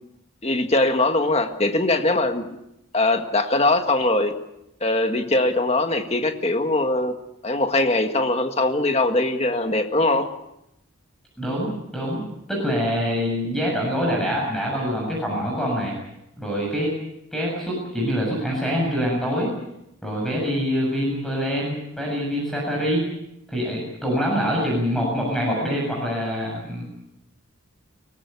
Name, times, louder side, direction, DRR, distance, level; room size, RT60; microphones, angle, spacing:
voice 1, 0.4-2.6 2.9-4.4 4.8-7.1 7.4-10.3, left 2 dB, 30° left, 5 dB, 1.7 m, -21 dB
voice 2, 11.4-15.9 16.4-17.0 17.3-19.5 20.0-23.1 23.5-26.8, equal, ahead, -2 dB, 7.4 m, -25 dB
23.5 x 19.0 x 8.4 m, 0.84 s
head